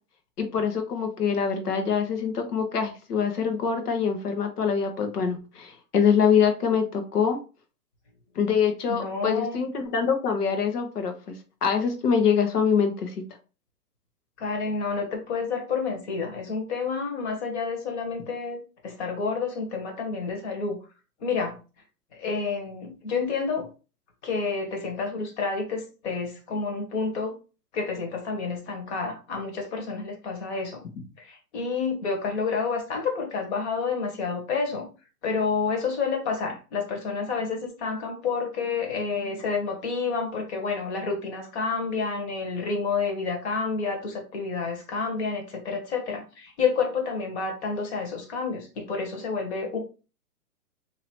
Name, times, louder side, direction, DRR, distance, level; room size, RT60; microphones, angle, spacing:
voice 1, 0.4-7.4 8.3-11.4 11.6-13.2, left 6 dB, 75° left, 6 dB, 1.2 m, -24 dB
voice 2, 8.9-9.6 14.4-20.8 21.2-21.6 22.2-23.7 24.2-27.3 27.7-30.8 31.2-34.9 35.2-49.8, left 4 dB, 45° left, 2 dB, 1.4 m, -29 dB
3.0 x 2.8 x 4.3 m, 0.34 s
hypercardioid pair, 150°, 46 cm